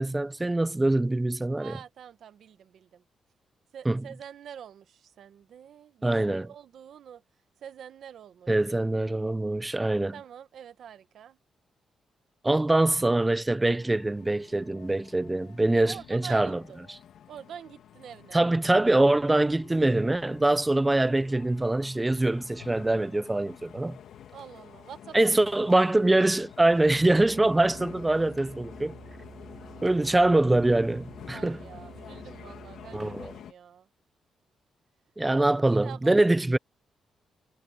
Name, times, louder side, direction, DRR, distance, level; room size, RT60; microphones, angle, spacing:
voice 1, 0.0-1.7 3.9-4.0 6.0-6.5 8.5-10.1 12.4-16.6 18.3-24.0 25.1-28.9 29.8-31.6 32.9-33.3 35.2-36.6, right 2 dB, 10° right, 0.5 m, -24 dB
voice 2, 1.6-3.0 3.7-7.2 7.6-8.5 10.1-11.4 15.7-16.8 17.3-18.4 24.3-25.4 31.3-33.9 35.3-35.5 35.7-36.2, right 9 dB, 60° right, 1.0 m, -46 dB
sound 1, 13.7-33.5, left 9 dB, 70° left, 2.4 m, -49 dB
Musical instrument, 26.7-33.5, right 5 dB, 25° right, 1.2 m, -49 dB
cardioid pair, 165°, 0 cm